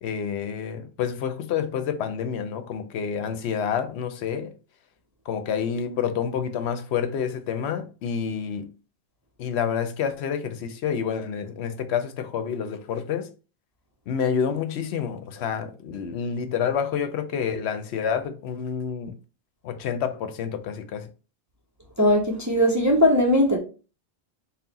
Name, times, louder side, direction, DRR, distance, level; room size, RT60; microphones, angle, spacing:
voice 1, 0.0-4.5 5.3-8.7 9.4-13.3 14.1-19.1 19.6-21.1, left 7 dB, 75° left, 0.8 m, -28 dB
voice 2, 22.0-23.6, left 1 dB, 25° right, 0.4 m, -19 dB
4.1 x 2.1 x 3.9 m
omnidirectional pair, 1.1 m